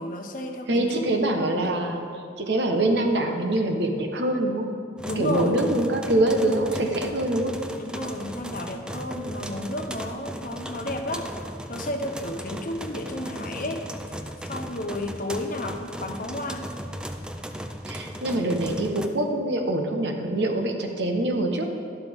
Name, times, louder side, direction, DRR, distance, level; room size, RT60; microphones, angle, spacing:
voice 1, 0.0-1.2 5.1-5.6 7.8-11.3 11.7-14.2 14.4-16.7, left 1 dB, 45° left, 4 dB, 0.9 m, -32 dB
voice 2, 0.7-4.7 5.2-7.5 17.9-21.7, right 1 dB, 60° right, 3 dB, 1.1 m, -24 dB
sound 1, 5.0-19.1, equal, 5° right, 0.4 m, -37 dB
12.5 x 11.5 x 3.6 m, 2.4 s
head